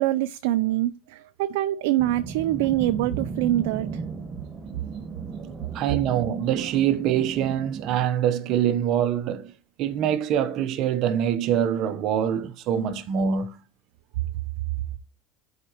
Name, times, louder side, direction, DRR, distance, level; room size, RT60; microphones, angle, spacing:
voice 1, 0.0-4.0, right 15 dB, 85° right, 0.5 m, -24 dB
jets low pass, 2.0-8.1, right 5 dB, 25° right, 1.5 m, -36 dB
voice 2, 5.7-9.5 9.8-13.6, right 9 dB, 60° right, 1.0 m, -24 dB
10.5 x 5.1 x 3.1 m
supercardioid pair, 110°, 0 cm